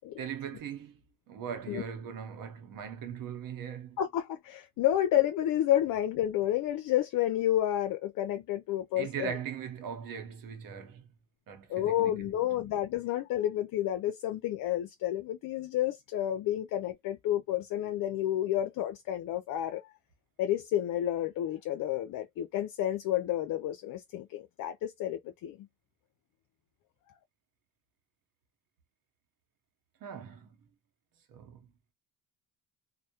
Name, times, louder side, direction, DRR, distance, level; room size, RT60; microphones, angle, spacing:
voice 1, 0.2-4.0 8.9-11.1 11.5-12.4 30.0-30.6 31.3-31.7, right 8 dB, 65° right, 0.8 m, -40 dB
voice 2, 4.0-9.3 11.7-19.9 20.4-25.7, left 12 dB, 60° left, 0.5 m, -30 dB
2.2 x 2.1 x 2.7 m
cardioid pair, 90°, 36 cm